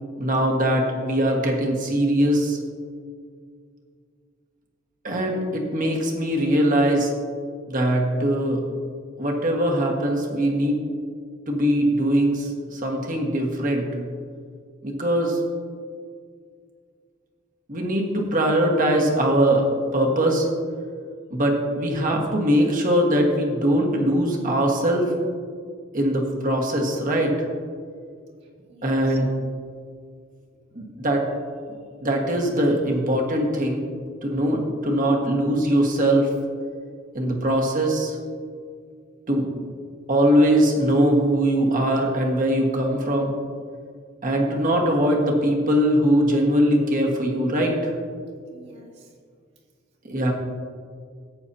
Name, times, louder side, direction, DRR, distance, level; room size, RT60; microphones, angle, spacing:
voice 1, 0.2-2.6 5.0-7.1 7.7-8.6 9.2-10.8 11.5-13.9 14.8-15.4 17.7-19.7 19.9-20.5 21.3-25.1 25.9-27.3 28.8-29.3 30.7-31.3 32.0-33.8 34.2-36.3 37.1-38.2 39.3-39.5 40.1-43.4 44.2-47.9 50.0-50.3, right 1 dB, 45° right, 0 dB, 1.6 m, -21 dB
voice 2, 28.7-29.2 48.5-49.1, right 2 dB, 60° right, -4 dB, 2.4 m, -48 dB
14.0 x 9.0 x 2.8 m, 2.1 s
head